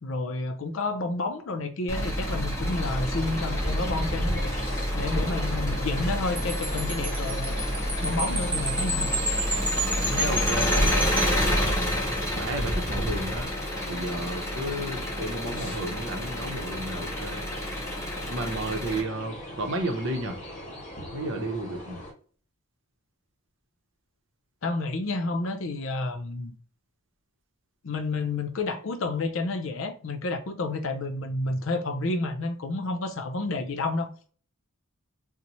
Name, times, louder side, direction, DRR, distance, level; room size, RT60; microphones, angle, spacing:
voice 1, 0.0-4.5 4.9-7.6 8.0-9.1 24.6-26.6 27.8-34.1, left 2 dB, 65° left, 0.5 m, -30 dB
Engine, 1.9-19.0, equal, 15° left, 0.8 m, -29 dB
sound 1, 2.6-22.1, left 1 dB, 35° left, 1.1 m, -40 dB
Wind chime, 6.4-12.0, right 1 dB, 5° right, 0.4 m, -32 dB
voice 2, 10.0-10.9 11.4-11.9 12.3-13.5 13.9-17.4 18.3-20.4 21.1-22.0, right 1 dB, 60° right, 0.7 m, -32 dB
4.1 x 2.1 x 3.0 m
head